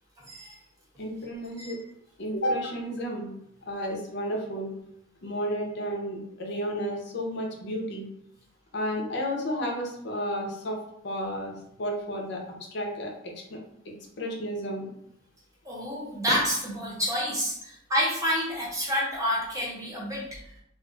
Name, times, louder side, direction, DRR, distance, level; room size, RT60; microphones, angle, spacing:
voice 1, 0.2-0.5 1.6-1.7 15.6-20.4, equal, 15° right, -4 dB, 0.8 m, -28 dB
voice 2, 1.0-1.8 2.2-3.3 3.6-4.7 5.2-8.1 8.7-10.8 11.0-11.5 11.8-12.4 12.7-13.6 13.8-14.9, equal, 60° left, 0 dB, 0.7 m, -32 dB
2.5 x 2.3 x 3.8 m, 0.74 s
head